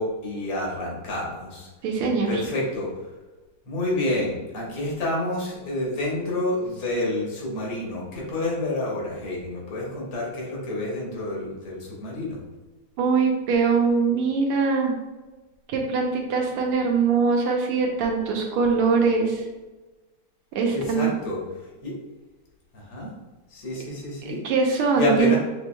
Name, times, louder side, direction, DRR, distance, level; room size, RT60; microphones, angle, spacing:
voice 1, 0.0-1.7 2.3-3.1 3.7-12.4 20.7-21.4 21.8-21.9 22.7-23.1 23.5-24.4 25.0-25.4, left 1 dB, 85° left, -3 dB, 2.2 m, -28 dB
voice 2, 1.8-2.4 13.0-14.9 15.7-19.4 20.5-21.1 24.2-25.4, right 5 dB, 85° right, 0 dB, 1.7 m, -22 dB
6.7 x 3.1 x 2.2 m, 1.2 s
omnidirectional pair, 2.4 m